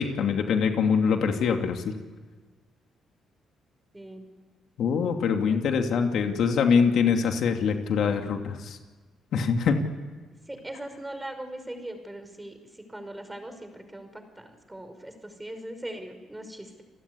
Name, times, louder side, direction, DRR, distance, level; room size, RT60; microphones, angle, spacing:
voice 1, 0.0-1.9 4.8-8.8 9.3-9.8, left 6 dB, 70° left, 4 dB, 2.8 m, -24 dB
voice 2, 3.9-4.2 5.5-5.6 10.5-12.5 12.9-16.8, right 1 dB, 10° right, 7 dB, 5.7 m, -40 dB
30.0 x 19.5 x 9.9 m, 1.4 s
cardioid pair, 90°, 0 cm